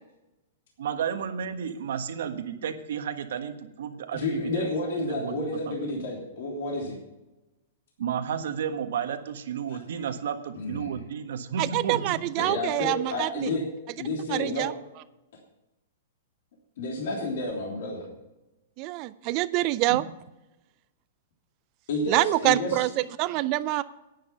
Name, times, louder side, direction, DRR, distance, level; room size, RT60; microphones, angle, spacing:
voice 1, 0.8-4.7 5.0-5.7 8.0-12.4 19.9-20.0, right 7 dB, 75° right, 8 dB, 1.4 m, -32 dB
voice 2, 4.1-7.0 9.7-9.8 10.5-10.9 12.4-13.6 14.0-14.7 16.8-18.1 21.9-22.8, left 2 dB, 65° left, -1 dB, 3.2 m, -30 dB
voice 3, 11.6-13.5 14.3-14.7 18.8-20.0 22.1-23.8, right 18 dB, 40° right, 15 dB, 0.5 m, -26 dB
10.5 x 9.7 x 5.8 m, 0.98 s
hypercardioid pair, 130°, 0 cm